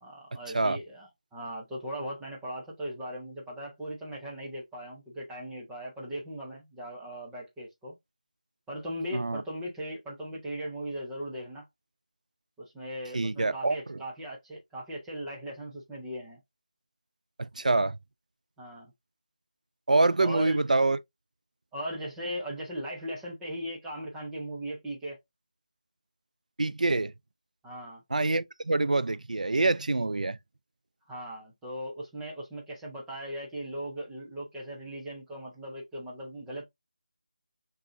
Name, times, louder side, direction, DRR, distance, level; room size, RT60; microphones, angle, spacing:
voice 1, 0.0-8.0 8.7-11.6 12.6-16.4 18.6-18.9 20.2-20.6 21.7-25.2 27.6-28.0 31.1-36.6, equal, ahead, 0.3 m, -38 dB
voice 2, 13.1-14.0 17.4-18.0 19.9-21.0 26.6-27.1 28.1-30.4, right 2 dB, 75° right, 0.4 m, -26 dB
6.2 x 2.4 x 2.6 m
figure-of-eight pair, 175°, 4 cm